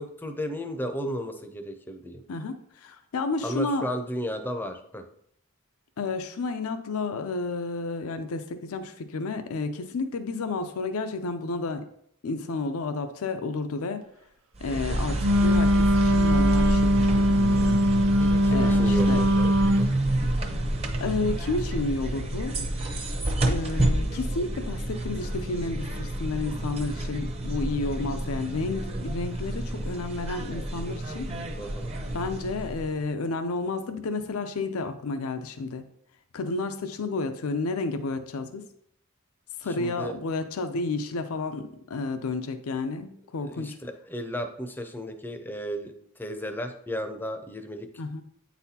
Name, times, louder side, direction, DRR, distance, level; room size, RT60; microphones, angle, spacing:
voice 1, 0.0-2.2 3.4-5.0 14.9-15.0 18.2-19.9 31.6-32.0 39.8-40.2 43.4-45.9 46.2-47.9, equal, 10° left, 6 dB, 0.5 m, -34 dB
voice 2, 2.3-3.8 6.0-11.8 12.2-14.0 14.6-17.8 18.5-19.2 21.0-22.7 23.4-31.3 32.1-35.8 36.3-38.6 39.6-43.8 48.0-48.2, left 3 dB, 85° left, 8 dB, 0.5 m, -31 dB
sound 1, 14.6-33.0, right 1 dB, 30° right, 0.7 m, -29 dB
Wind instrument woodwind instrument, 15.2-19.9, equal, 85° right, 0.6 m, -21 dB
8.9 x 4.1 x 2.8 m, 0.70 s
head